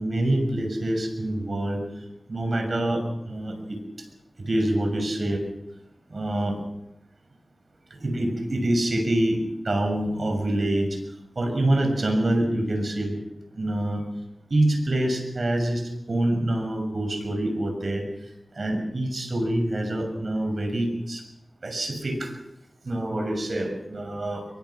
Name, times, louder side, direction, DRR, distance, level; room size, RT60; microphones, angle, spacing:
voice 1, 0.0-1.8 2.3-3.8 4.5-5.4 6.1-6.6 8.0-9.4 9.6-11.0 11.4-13.2 13.6-14.0 14.5-18.0 18.5-21.2 21.6-22.3 22.8-24.5, right 1 dB, 65° right, 5 dB, 6.5 m, -26 dB
25.5 x 22.5 x 6.0 m, 0.85 s
wide cardioid pair, 55°, 0 cm